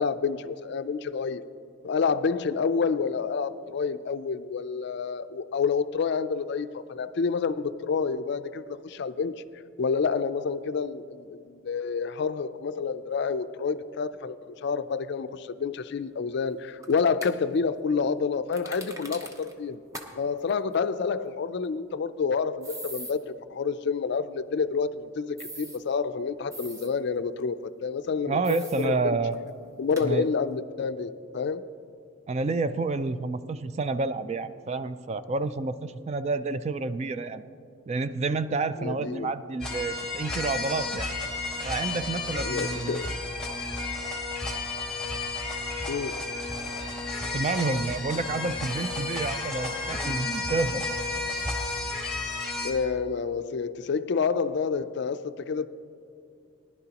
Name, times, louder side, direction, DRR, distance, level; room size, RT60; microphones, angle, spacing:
voice 1, 0.0-1.4 1.8-9.4 9.8-19.8 20.2-29.2 29.8-31.6 38.8-39.3 42.4-43.1 45.9-46.4 52.6-55.7, left 5 dB, 55° left, 0.4 m, -28 dB
sound 1, 16.8-17.3 18.5-19.5 19.9-20.1 20.4-20.5 22.6-23.1 25.4-25.8 26.5-26.9 28.4-28.9 29.3-29.4 29.9-30.1, right 1 dB, 15° right, 0.8 m, -41 dB
voice 2, 28.3-29.4 30.0-30.3 32.3-37.4 37.9-41.1 41.6-43.0 47.3-50.9, right 3 dB, 30° right, 0.3 m, -29 dB
sound 2, 39.6-52.7, left 3 dB, 5° left, 2.0 m, -32 dB
19.0 x 11.0 x 2.9 m
head